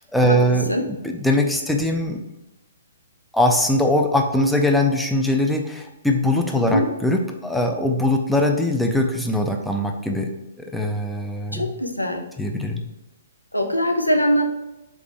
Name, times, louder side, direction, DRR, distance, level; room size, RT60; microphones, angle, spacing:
voice 1, 0.0-2.2 3.3-10.3 10.7-11.7 12.4-12.8, left 1 dB, ahead, 2 dB, 0.5 m, -21 dB
voice 2, 6.5-6.9 11.5-12.2 13.5-14.5, equal, 85° left, 4 dB, 0.6 m, -22 dB
4.1 x 3.6 x 3.4 m, 0.96 s
figure-of-eight pair, 120°, 0 cm